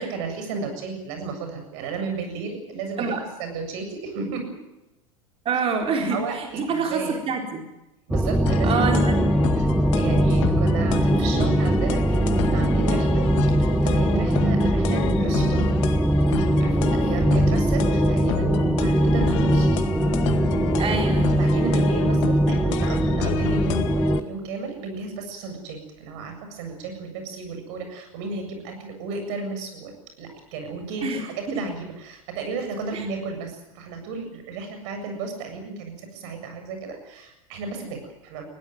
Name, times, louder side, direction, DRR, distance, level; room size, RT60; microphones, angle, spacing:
voice 1, 0.0-4.5 5.9-7.2 8.1-9.3 10.0-15.8 16.6-19.9 21.4-38.4, right 4 dB, 60° right, 6 dB, 7.5 m, -33 dB
voice 2, 5.4-7.6 8.6-9.2 20.8-21.4 31.0-31.6 32.9-33.0, right 4 dB, 35° right, 2 dB, 4.1 m, -26 dB
sound 1, 8.1-24.2, right 1 dB, 5° right, 1.1 m, -21 dB
sound 2, 8.5-24.2, left 11 dB, 60° left, 1.9 m, -31 dB
21.0 x 17.0 x 9.4 m, 0.97 s
hypercardioid pair, 85°, 17 cm